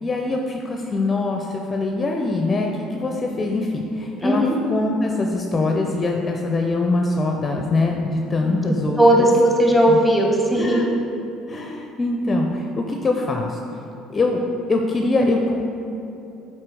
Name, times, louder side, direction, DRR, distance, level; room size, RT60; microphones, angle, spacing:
voice 1, 0.0-9.3 9.9-10.0 10.6-10.9 11.5-14.4 14.7-15.6, left 2 dB, 30° left, 2 dB, 0.6 m, -23 dB
voice 2, 4.2-4.5 8.4-8.6 9.0-10.8, right 1 dB, 5° right, 0 dB, 1.5 m, -17 dB
7.5 x 4.5 x 4.7 m, 2.7 s
hypercardioid pair, 70°, 0 cm